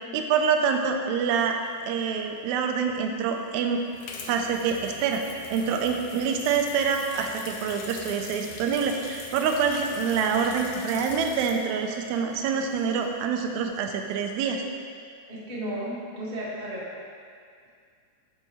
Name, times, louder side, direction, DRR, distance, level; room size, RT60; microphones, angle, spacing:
voice 1, 0.1-1.6 1.8-3.8 4.2-5.2 5.5-14.6, right 6 dB, 80° right, 4 dB, 1.8 m, -26 dB
sound 1, 1.2-2.1 3.1-13.2 13.6-14.0 14.3-14.5, left 4 dB, 75° left, 2.0 m, -43 dB
voice 2, 15.3-16.9, right 1 dB, 35° right, -8 dB, 0.7 m, -34 dB
13.0 x 4.6 x 3.0 m, 2.2 s
omnidirectional pair, 3.7 m